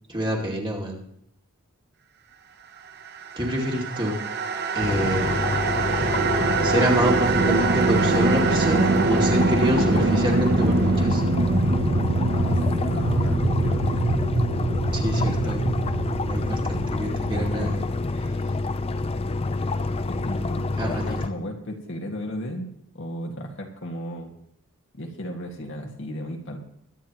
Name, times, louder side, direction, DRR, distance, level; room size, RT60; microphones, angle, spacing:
voice 1, 0.1-1.0 3.4-4.2 4.7-5.5 5.8-6.2 6.6-11.2 14.9-15.6 16.2-17.8 20.8-21.2, equal, 20° right, -2 dB, 2.4 m, -27 dB
sound 1, 3.4-18.6, right 3 dB, 45° right, 0.9 m, -24 dB
sound 2, 4.8-21.3, left 3 dB, 25° left, 0.4 m, -28 dB
voice 2, 12.3-14.0 15.2-15.7 17.3-17.7 19.6-19.7 20.0-24.3 24.9-26.6, equal, 55° left, 2 dB, 2.0 m, -35 dB
22.5 x 10.0 x 3.1 m, 0.72 s
head